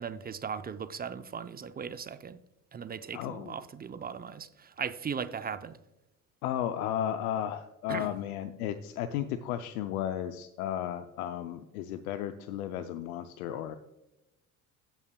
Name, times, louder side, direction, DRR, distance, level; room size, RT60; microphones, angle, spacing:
voice 1, 0.0-2.4 2.7-5.8 7.9-8.1, right 6 dB, 20° right, 0.5 m, -38 dB
voice 2, 3.1-3.6 6.4-13.8, left 10 dB, 80° left, 0.6 m, -34 dB
15.5 x 5.8 x 2.3 m
hypercardioid pair, 65°, 44 cm